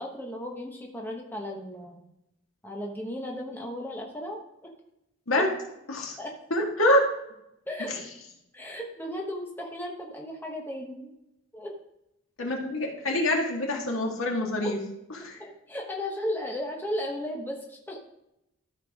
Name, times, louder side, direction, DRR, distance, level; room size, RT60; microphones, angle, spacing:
voice 1, 0.0-2.0 2.6-4.7 6.2-6.3 7.7-8.0 8.5-11.1 11.5-11.7 14.6-14.7 15.4-18.0, left 1 dB, 10° left, -1 dB, 1.0 m, -35 dB
voice 2, 6.5-7.0 12.4-14.8 15.2-15.3, left 1 dB, 80° left, 0 dB, 1.9 m, -25 dB
13.0 x 5.8 x 3.6 m, 0.85 s
head